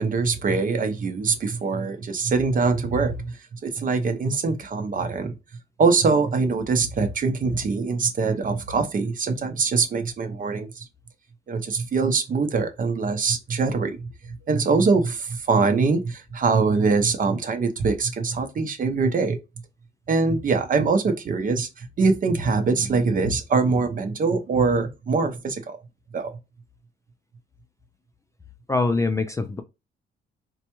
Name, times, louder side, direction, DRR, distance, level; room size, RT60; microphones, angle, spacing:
voice 1, 0.0-5.3 5.8-10.9 11.5-19.4 20.1-25.8 26.1-26.3, right 4 dB, 45° right, 0.7 m, -23 dB
voice 2, 28.7-29.6, left 3 dB, 15° left, 0.3 m, -23 dB
4.0 x 2.2 x 2.9 m
cardioid pair, 90°, 20 cm